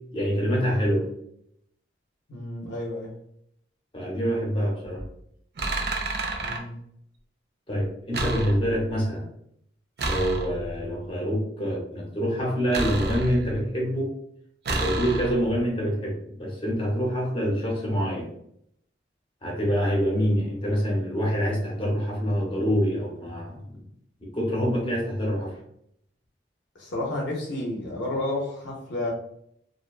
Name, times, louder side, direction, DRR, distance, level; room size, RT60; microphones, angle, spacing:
voice 1, 0.1-1.0 3.9-5.0 7.7-9.2 10.0-14.1 14.7-18.3 19.4-23.8 24.2-25.6, equal, 30° left, 0.7 m, -26 dB
voice 2, 2.3-3.1 6.4-6.7 26.8-29.1, left 1 dB, 80° left, 0.6 m, -31 dB
sound 1, 5.0-5.1 5.6-6.6 8.1-8.9 10.0-10.8 12.7-13.7 14.7-15.6, right 2 dB, 60° right, 0.4 m, -30 dB
2.5 x 2.1 x 2.3 m
head